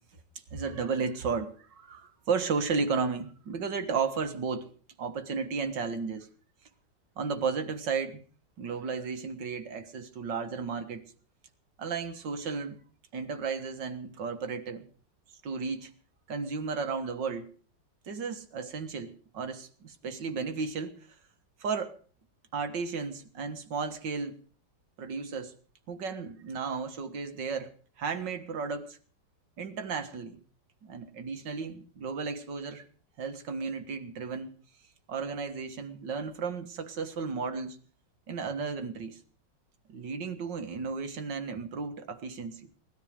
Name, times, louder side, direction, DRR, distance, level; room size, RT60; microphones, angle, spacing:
voice 1, 0.5-4.7 5.0-6.3 7.2-8.2 8.6-11.1 11.8-12.8 13.1-14.8 15.4-15.9 16.3-17.5 18.1-21.1 21.6-22.0 22.5-24.4 25.0-25.5 25.9-27.7 28.0-29.0 29.6-30.4 30.8-32.9 33.2-34.5 35.1-37.8 38.3-39.2 39.9-42.7, right 5 dB, 75° right, 2.2 m, -34 dB
19.0 x 13.5 x 5.2 m
omnidirectional pair, 1.9 m